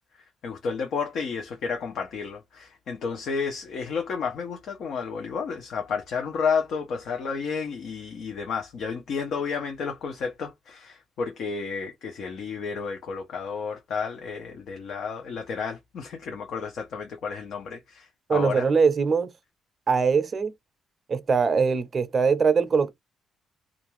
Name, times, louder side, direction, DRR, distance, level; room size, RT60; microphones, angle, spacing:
voice 1, 0.4-18.7, left 5 dB, 70° left, 0.6 m, -31 dB
voice 2, 18.3-19.3 19.9-20.5 21.1-22.9, right 5 dB, 40° right, 0.6 m, -22 dB
2.5 x 2.3 x 3.0 m
cardioid pair, 90°, 0 cm